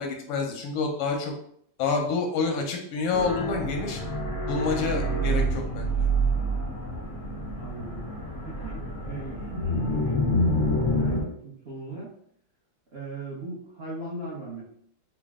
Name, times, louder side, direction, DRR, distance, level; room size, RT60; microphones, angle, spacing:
voice 1, 0.0-1.3 1.8-4.0 4.5-6.1, left 4 dB, 90° left, 3 dB, 1.7 m, -28 dB
sound 1, 3.1-11.2, equal, 60° left, 0.7 m, -27 dB
voice 2, 7.6-8.1 8.5-10.3 10.9-12.1 12.9-14.7, right 2 dB, 70° right, -7 dB, 0.5 m, -38 dB
4.3 x 2.0 x 3.5 m, 0.66 s
omnidirectional pair, 2.4 m